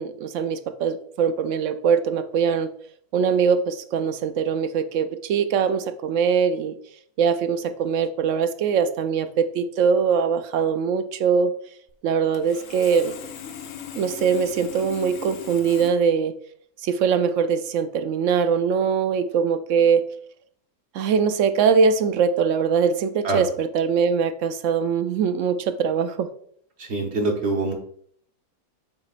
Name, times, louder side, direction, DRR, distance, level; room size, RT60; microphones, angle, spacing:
voice 1, 0.0-2.7 3.1-6.7 7.2-11.5 12.0-13.2 14.0-16.3 16.8-20.1 20.9-26.3, right 6 dB, 70° right, 10 dB, 0.8 m, -22 dB
Sawing, 11.9-12.0 12.3-15.9, left 8 dB, 65° left, 1.0 m, -38 dB
voice 2, 26.8-27.7, right 3 dB, 45° right, 2 dB, 1.4 m, -24 dB
7.2 x 6.3 x 2.5 m, 0.63 s
omnidirectional pair, 1.6 m